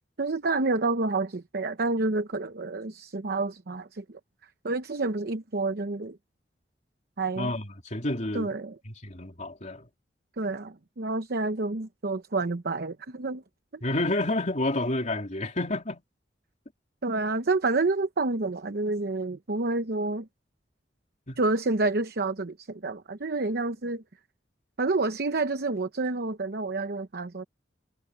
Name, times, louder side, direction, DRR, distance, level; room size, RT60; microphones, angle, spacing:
voice 1, 0.2-4.0 4.6-6.2 7.2-7.5 8.3-8.7 10.4-13.4 13.7-13.8 17.0-20.3 21.4-24.0 24.8-27.5, right 3 dB, 60° right, 0.9 m, -28 dB
voice 2, 7.4-8.5 8.8-9.9 13.8-16.0 21.3-21.4, left 2 dB, 45° left, 3.4 m, -29 dB
head